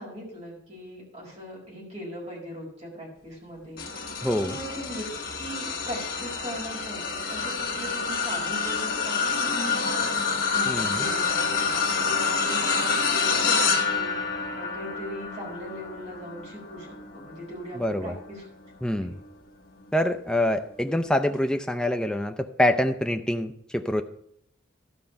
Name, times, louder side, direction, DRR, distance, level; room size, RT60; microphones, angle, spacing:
voice 1, 0.0-5.0 5.4-18.5 19.0-19.1, equal, 35° right, -4 dB, 4.4 m, -40 dB
sound 1, 3.8-19.3 19.8-20.1 21.3-21.4, left 4 dB, 50° left, 1.4 m, -28 dB
voice 2, 4.2-4.6 10.7-11.0 17.8-18.1 18.8-19.2 19.9-24.0, left 1 dB, 5° left, 5 dB, 0.4 m, -25 dB
13.0 x 5.2 x 5.7 m, 0.73 s
head